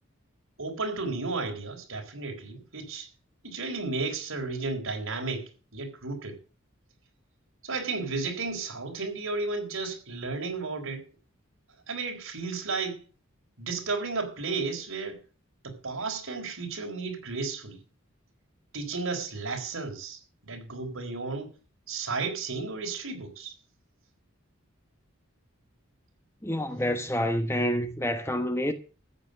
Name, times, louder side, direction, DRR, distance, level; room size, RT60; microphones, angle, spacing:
voice 1, 0.6-3.1 3.4-6.4 7.6-11.0 11.9-13.0 13.6-15.2 15.6-17.8 18.7-21.5 21.9-23.5, right 3 dB, 80° right, 4.2 m, -33 dB
voice 2, 26.4-28.7, equal, 10° left, 1.1 m, -28 dB
14.0 x 8.3 x 6.6 m
head